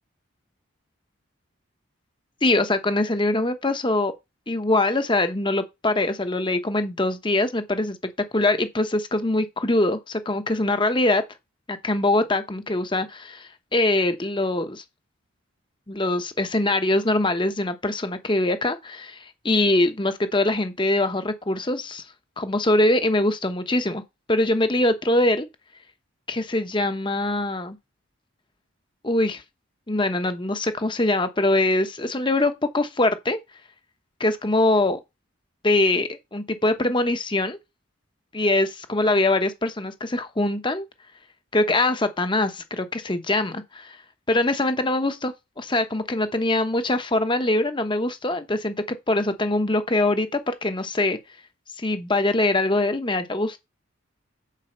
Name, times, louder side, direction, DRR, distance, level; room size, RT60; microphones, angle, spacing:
voice 1, 2.4-4.1 4.5-8.0 8.3-11.2 11.7-14.8 15.9-22.0 22.4-24.0 24.3-25.5 26.3-27.8 29.0-29.4 29.9-33.4 34.2-35.0 35.6-37.6 38.3-40.9 41.5-44.0 44.3-51.2 51.8-53.6, left 2 dB, 25° left, 0.9 m, -23 dB
7.5 x 4.9 x 6.6 m
head